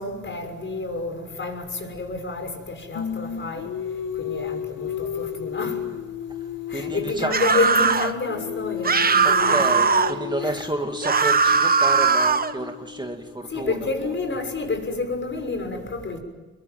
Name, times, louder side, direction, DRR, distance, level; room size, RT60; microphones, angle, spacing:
voice 1, 0.0-3.7 4.2-5.8 6.7-9.9 10.4-10.7 13.5-16.2, left 3 dB, 40° left, 4 dB, 6.4 m, -29 dB
Singing, 2.9-7.3 7.5-13.5, left 9 dB, 80° left, 2.2 m, -33 dB
voice 2, 6.7-7.3 9.2-14.1, right 2 dB, 15° right, 4 dB, 2.1 m, -30 dB
sound 1, 7.3-8.1 8.8-10.2 11.0-12.5, right 5 dB, 30° right, 1.4 m, -19 dB
27.5 x 22.0 x 9.4 m, 1.2 s
cardioid pair, 90°, 30 cm